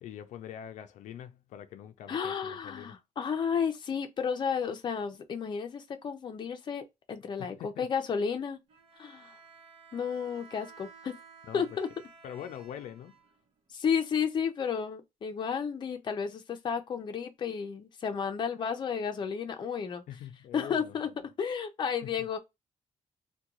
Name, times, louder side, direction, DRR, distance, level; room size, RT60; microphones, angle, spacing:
voice 1, 0.0-2.9 7.4-7.9 11.5-11.6 12.2-13.2 20.1-21.0 22.0-22.1, left 10 dB, 85° left, 0.4 m, -44 dB
voice 2, 2.1-8.6 9.0-9.4 9.9-11.2 11.5-11.9 13.7-20.0 20.5-21.1 21.4-22.4, left 6 dB, 40° left, 0.6 m, -32 dB
Bowed string instrument, 8.7-13.7, right 5 dB, 50° right, 0.8 m, -54 dB
3.6 x 2.3 x 2.8 m
cardioid pair, 150°, 12 cm